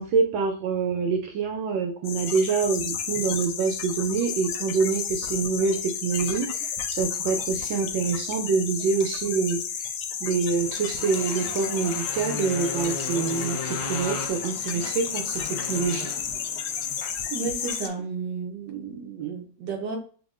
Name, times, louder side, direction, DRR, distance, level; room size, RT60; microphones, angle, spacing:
voice 1, 0.0-9.9 10.2-16.1, right 5 dB, 80° right, 3 dB, 1.4 m, -26 dB
sound 1, 2.0-17.9, left 7 dB, 90° left, 1.4 m, -32 dB
Motorcycle, 10.5-17.9, left 4 dB, 60° left, 1.0 m, -37 dB
voice 2, 17.3-20.0, right 5 dB, 65° right, 2 dB, 1.4 m, -32 dB
6.5 x 2.3 x 2.4 m, 0.41 s
omnidirectional pair, 2.2 m